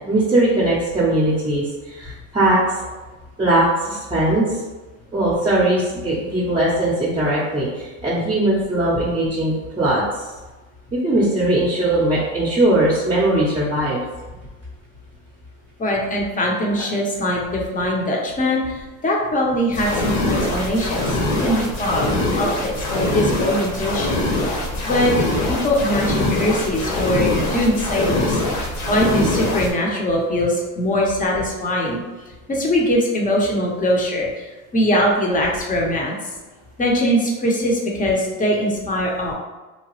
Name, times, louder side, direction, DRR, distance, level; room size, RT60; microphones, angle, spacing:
voice 1, 0.0-2.6 3.4-4.6 5.1-10.3 10.9-14.0, right 1 dB, 15° right, -6 dB, 0.7 m, -20 dB
voice 2, 15.8-25.1 25.4-32.0 32.5-36.1 36.8-39.3, equal, 20° left, -1 dB, 0.7 m, -22 dB
sound 1, 19.7-29.7, left 1 dB, 60° left, 1.1 m, -23 dB
2.9 x 2.2 x 3.0 m, 1.2 s
hypercardioid pair, 90°, 41 cm